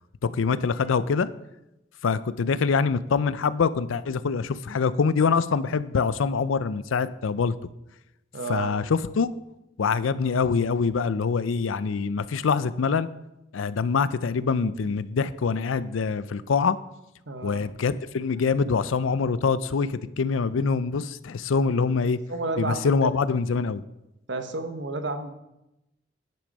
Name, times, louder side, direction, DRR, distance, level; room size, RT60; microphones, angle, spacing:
voice 1, 0.2-1.3 2.0-7.5 8.5-9.3 9.8-13.1 13.5-16.8 17.4-22.2 22.6-23.8, left 5 dB, 85° left, 15 dB, 0.5 m, -24 dB
voice 2, 8.3-8.7 17.3-17.6 22.3-23.1 24.3-25.3, right 3 dB, 65° right, 8 dB, 1.0 m, -31 dB
10.0 x 6.2 x 5.3 m, 0.91 s
head